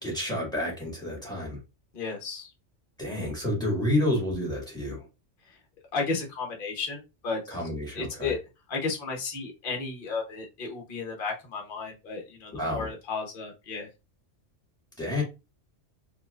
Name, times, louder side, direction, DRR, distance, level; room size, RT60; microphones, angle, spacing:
voice 1, 0.0-1.6 3.0-5.1 7.5-8.4 12.5-12.9 15.0-15.2, left 1 dB, 5° left, -2 dB, 1.6 m, -29 dB
voice 2, 1.9-2.5 5.9-7.6 7.9-8.4 8.7-13.9, left 4 dB, 50° left, 1 dB, 1.1 m, -33 dB
4.4 x 2.5 x 2.4 m, 0.26 s
omnidirectional pair, 1.3 m